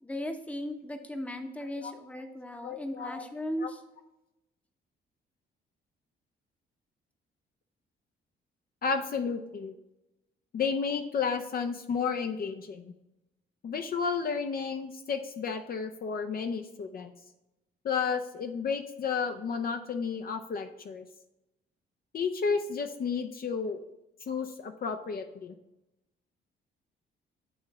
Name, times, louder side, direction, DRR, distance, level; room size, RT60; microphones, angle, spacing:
voice 1, 0.0-3.8, left 1 dB, 5° left, 6 dB, 0.8 m, -37 dB
voice 2, 2.6-3.2 3.6-3.7 8.8-9.7 10.5-12.9 13.6-17.1 17.8-21.0 22.1-23.8 24.3-25.5, left 5 dB, 50° left, 6 dB, 0.6 m, -32 dB
8.7 x 3.1 x 4.7 m, 0.95 s
cardioid pair, 90°, 20 cm